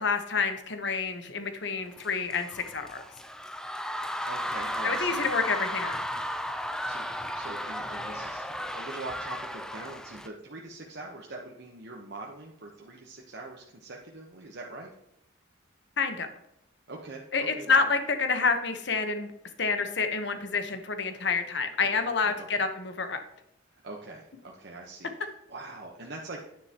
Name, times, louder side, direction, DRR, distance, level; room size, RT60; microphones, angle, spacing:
voice 1, 0.0-3.0 4.8-6.0 16.0-16.3 17.3-19.3 19.6-23.2, left 4 dB, 60° left, 7 dB, 1.1 m, -28 dB
sound 1, 2.0-10.3, equal, 5° left, 0.4 m, -35 dB
voice 2, 4.3-5.2 6.5-7.1 7.3-14.9 16.9-17.9 22.2-22.5 23.7-26.4, right 2 dB, 55° right, -1 dB, 1.0 m, -43 dB
9.8 x 9.8 x 2.9 m, 0.82 s
head